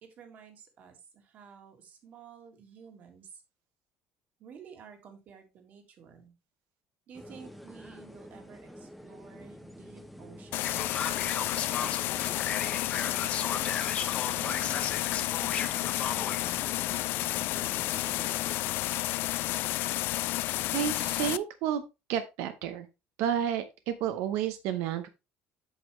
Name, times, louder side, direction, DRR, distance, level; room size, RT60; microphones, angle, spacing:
voice 1, 0.0-3.4 4.4-6.3 7.1-13.4 14.4-18.2, right 6 dB, 40° right, 6 dB, 1.9 m, -52 dB
sound 1, 7.1-18.7, equal, ahead, 0.7 m, -48 dB
sound 2, 10.5-21.4, left 17 dB, 60° left, 0.3 m, -31 dB
Male speech man speaking, 10.6-16.4, left 7 dB, 30° left, 1.1 m, -35 dB
voice 2, 20.7-21.8 22.1-22.9 23.2-25.1, right 9 dB, 90° right, 9 dB, 0.8 m, -31 dB
8.2 x 6.4 x 3.1 m, 0.25 s
cardioid pair, 175°, 4 cm